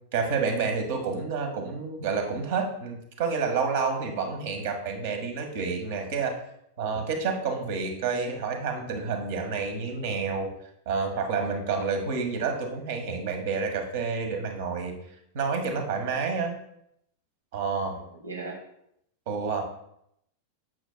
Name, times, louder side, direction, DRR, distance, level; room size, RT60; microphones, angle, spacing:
voice 1, 0.1-6.4 6.8-10.5 10.8-15.0 15.3-16.5 17.5-18.0 19.3-19.6, right 5 dB, 50° right, 4 dB, 1.4 m, -29 dB
voice 2, 17.9-18.6, right 3 dB, 75° right, 1 dB, 0.9 m, -38 dB
8.7 x 7.5 x 2.2 m, 0.75 s
figure-of-eight pair, 90°, 0 cm